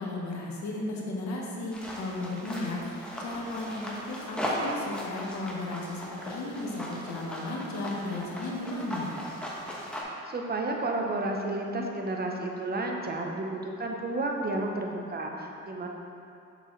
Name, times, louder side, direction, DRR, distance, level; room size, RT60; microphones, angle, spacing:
voice 1, 0.0-9.2, left 2 dB, 65° left, -2 dB, 1.2 m, -35 dB
sound 1, 1.7-10.0, equal, 5° left, 1.3 m, -37 dB
voice 2, 10.2-15.9, right 2 dB, 30° right, 1 dB, 0.9 m, -31 dB
6.7 x 6.0 x 3.2 m, 2.6 s
cardioid pair, 90°, 30 cm